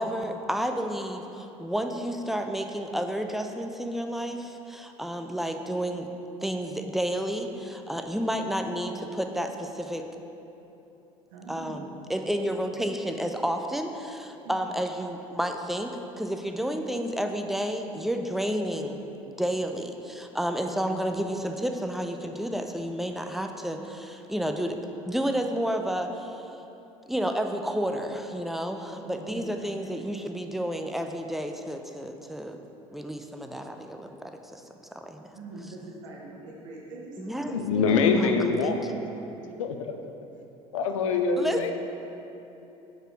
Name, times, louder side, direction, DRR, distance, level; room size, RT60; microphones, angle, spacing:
voice 1, 0.0-6.1 6.4-10.1 11.5-19.0 19.3-26.4 27.1-32.6 32.9-34.1 34.5-34.6 34.9-35.2 37.2-38.3 38.6-38.8 41.4-41.7, equal, ahead, 5 dB, 0.4 m, -31 dB
voice 2, 11.3-11.9 12.5-12.6 14.4-14.8 20.7-21.3 29.0-29.5 29.8-30.0 35.3-37.5, right 2 dB, 75° right, -3 dB, 1.0 m, -43 dB
voice 3, 37.5-38.9 39.6-40.0 40.7-41.7, left 5 dB, 75° left, 5 dB, 0.5 m, -24 dB
4.8 x 4.6 x 4.6 m, 3.0 s
figure-of-eight pair, 65°, 17 cm